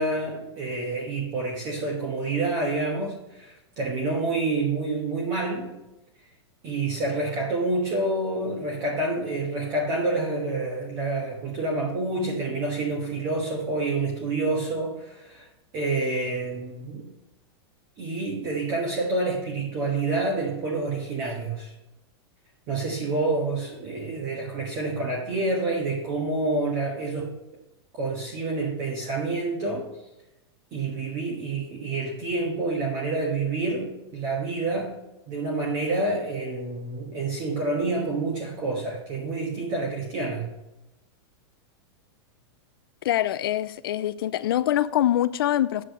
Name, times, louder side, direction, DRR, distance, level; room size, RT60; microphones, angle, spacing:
voice 1, 0.0-5.7 6.6-15.5 15.7-17.0 18.0-21.7 22.7-27.3 27.9-29.9 30.7-34.9 35.3-40.5, right 2 dB, 25° right, -1 dB, 1.3 m, -28 dB
voice 2, 43.0-45.8, left 12 dB, 55° left, 14 dB, 0.4 m, -24 dB
9.8 x 7.6 x 3.0 m, 0.96 s
supercardioid pair, 175°, 14 cm